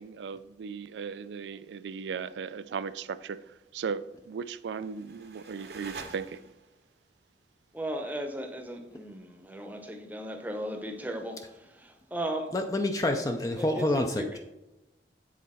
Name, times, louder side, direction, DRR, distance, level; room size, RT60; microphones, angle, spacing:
voice 1, 0.0-6.4, right 6 dB, 80° right, 15 dB, 0.3 m, -37 dB
sound 1, 4.5-6.8, right 4 dB, 65° right, 0.8 m, -46 dB
voice 2, 7.7-12.5 13.6-13.8 14.1-14.3, right 1 dB, 10° right, 4 dB, 0.7 m, -36 dB
voice 3, 12.5-14.4, left 1 dB, 20° left, 4 dB, 0.4 m, -28 dB
7.5 x 4.0 x 4.2 m, 0.99 s
head